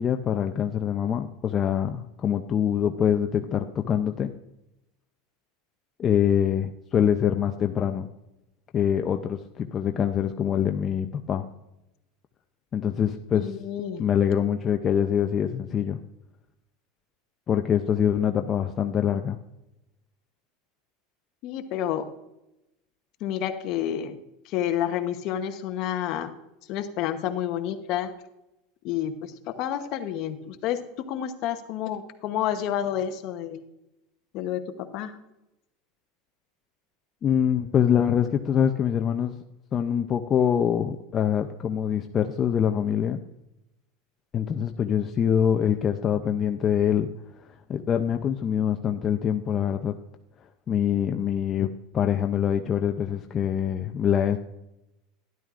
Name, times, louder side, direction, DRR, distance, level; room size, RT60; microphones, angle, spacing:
voice 1, 0.0-4.3 6.0-8.1 8.7-11.4 12.7-13.5 14.0-16.0 17.5-19.4 37.2-39.4 39.7-43.2 44.3-47.1 47.7-49.9 50.7-54.4, left 8 dB, 25° left, 5 dB, 0.5 m, -24 dB
voice 2, 13.3-14.0 21.4-22.1 23.2-24.2 24.5-26.4 26.7-28.1 28.8-30.8 31.1-33.6 34.3-35.2, left 10 dB, 50° left, 8 dB, 0.9 m, -29 dB
12.0 x 11.0 x 2.5 m, 0.91 s
supercardioid pair, 150°, 0 cm